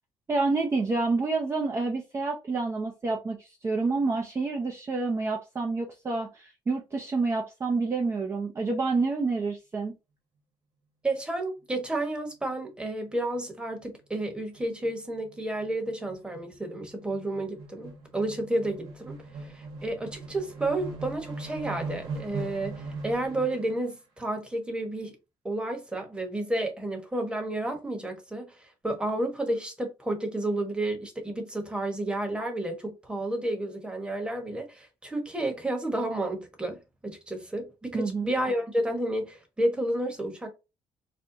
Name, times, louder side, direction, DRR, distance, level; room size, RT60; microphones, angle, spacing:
voice 1, 0.3-9.9 37.9-38.3, right 3 dB, 30° right, 0.6 m, -28 dB
voice 2, 11.0-25.1 25.4-40.5, right 1 dB, 10° right, 1.1 m, -31 dB
sound 1, 13.1-13.4 13.8-13.9 14.1-23.8, right 3 dB, 85° right, 1.3 m, -40 dB
4.3 x 2.2 x 2.6 m
cardioid pair, 100°, 9 cm